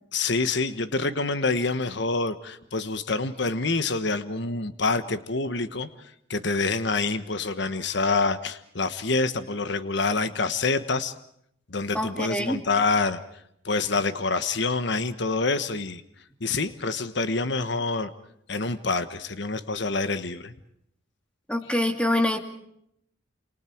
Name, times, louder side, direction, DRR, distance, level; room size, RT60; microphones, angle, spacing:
voice 1, 0.1-5.9 6.3-11.1 11.7-13.2 13.6-16.0 16.4-18.1 18.5-20.5, left 3 dB, 60° left, 11 dB, 1.3 m, -26 dB
voice 2, 11.9-12.6 21.5-22.4, left 1 dB, 5° left, 5 dB, 2.5 m, -25 dB
29.0 x 28.5 x 4.6 m, 0.73 s
head